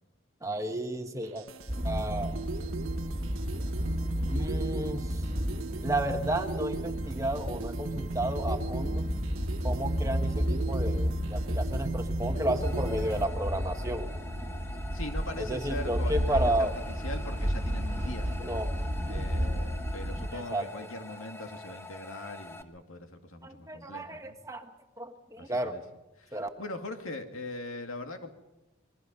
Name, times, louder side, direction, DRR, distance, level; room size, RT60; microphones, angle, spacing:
voice 1, 0.4-1.5 1.8-2.4 4.3-5.3 5.8-9.1 9.6-14.1 15.4-16.7 18.4-18.7 20.3-20.6 23.4-24.7 25.0-25.7 26.3-26.5, right 1 dB, 15° right, 5 dB, 1.3 m, -32 dB
sound 1, 1.2-13.2, right 3 dB, 80° right, 1.2 m, -38 dB
sound 2, 1.7-20.3, equal, 35° right, 1.7 m, -32 dB
sound 3, 12.6-22.6, left 2 dB, 10° left, 1.0 m, -46 dB
voice 2, 14.9-16.7 17.0-18.5 19.1-24.4 25.4-25.8 26.2-28.3, left 2 dB, 80° left, 5 dB, 2.3 m, -41 dB
27.5 x 21.0 x 5.5 m, 0.99 s
head